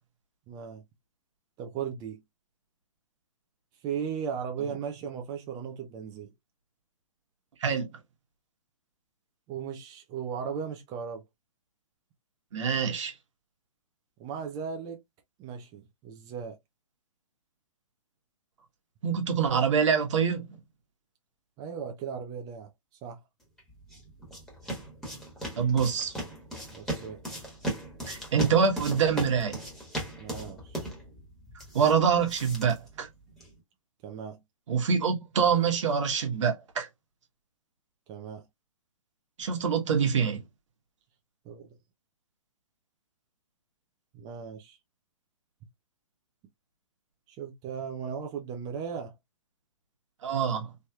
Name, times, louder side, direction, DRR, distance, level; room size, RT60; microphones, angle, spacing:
voice 1, 0.5-0.8 1.6-2.2 3.8-6.3 9.5-11.2 14.2-15.0 15.4-16.6 21.6-22.7 23.0-23.2 26.7-27.2 30.2-30.9 34.0-34.4 38.1-38.5 41.5-41.7 44.1-44.8 47.3-49.1, right 7 dB, 20° right, 0.5 m, -37 dB
voice 2, 12.5-13.1 19.0-20.6 25.6-26.1 28.1-29.6 31.7-33.1 34.7-36.9 39.4-40.4 50.2-50.7, right 6 dB, 65° right, 1.2 m, -25 dB
sound 1, 23.6-33.6, right 1 dB, ahead, 1.3 m, -38 dB
3.2 x 2.8 x 2.3 m
hypercardioid pair, 135°, 17 cm